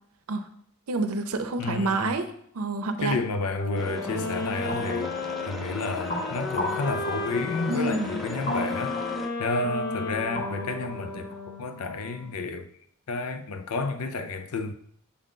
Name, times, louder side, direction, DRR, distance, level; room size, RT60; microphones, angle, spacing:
voice 1, 0.9-2.3 2.5-3.2 7.7-8.2, right 3 dB, 80° right, 0.6 m, -28 dB
voice 2, 1.6-2.1 3.0-5.2 5.5-9.0 9.4-12.7 13.1-14.7, left 3 dB, 85° left, 0.5 m, -31 dB
sound 1, 3.6-11.8, left 3 dB, 55° left, 0.8 m, -34 dB
sound 2, 3.7-9.3, equal, ahead, 0.5 m, -38 dB
sound 3, 4.7-12.3, left 2 dB, 35° left, 1.8 m, -36 dB
6.9 x 3.8 x 3.8 m
head